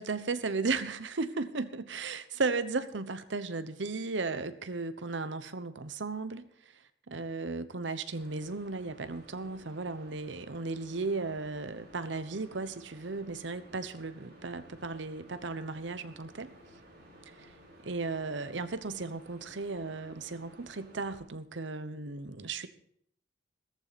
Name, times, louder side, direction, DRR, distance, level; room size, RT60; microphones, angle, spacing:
voice 1, 0.0-6.8 7.1-16.5 17.4-17.5 17.8-22.7, right 3 dB, 75° right, 12 dB, 0.9 m, -35 dB
sound 1, 8.1-21.2, equal, 60° right, 5.4 m, -55 dB
15.0 x 14.0 x 4.2 m, 0.68 s
head